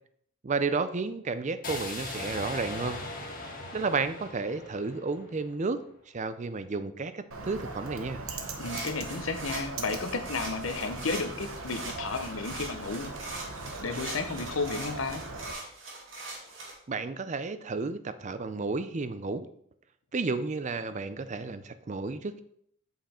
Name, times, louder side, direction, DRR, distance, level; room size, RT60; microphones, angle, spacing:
voice 1, 0.4-3.0 3.7-5.8 6.1-8.2 16.9-19.5 20.1-22.4, right 4 dB, 35° right, 12 dB, 0.4 m, -32 dB
sound 1, 1.6-5.7, left 2 dB, 40° left, 1.9 m, -39 dB
Bird, 7.3-15.5, right 3 dB, 90° right, 1.1 m, -40 dB
sound 2, 8.4-16.7, right 2 dB, 65° right, 2.3 m, -41 dB
voice 2, 8.6-13.1 13.8-15.2, left 4 dB, 70° left, 8 dB, 0.9 m, -33 dB
7.5 x 5.6 x 4.3 m, 0.66 s
head